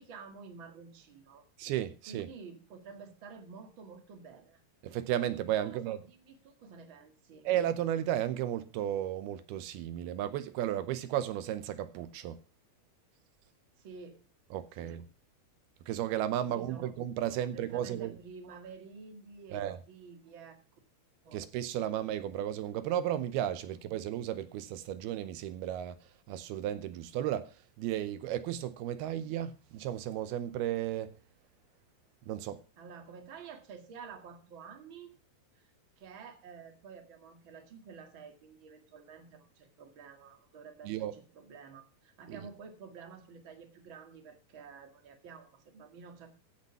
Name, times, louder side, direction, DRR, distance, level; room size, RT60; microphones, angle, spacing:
voice 1, 0.0-1.4 2.1-4.6 5.6-7.5 13.8-14.2 14.8-15.0 16.4-16.9 17.3-20.6 21.2-21.4 23.6-23.8 32.8-35.1 35.5-35.7 36.0-46.3, right 5 dB, 40° right, 2.2 m, -50 dB
voice 2, 1.6-2.3 4.8-6.0 7.4-12.4 14.5-15.1 15.9-18.2 19.5-19.8 21.3-26.0 26.3-27.5 27.8-31.1 32.3-32.6 40.8-41.1 42.3-42.4, right 11 dB, 85° right, 2.7 m, -34 dB
15.5 x 6.7 x 5.9 m
omnidirectional pair, 4.5 m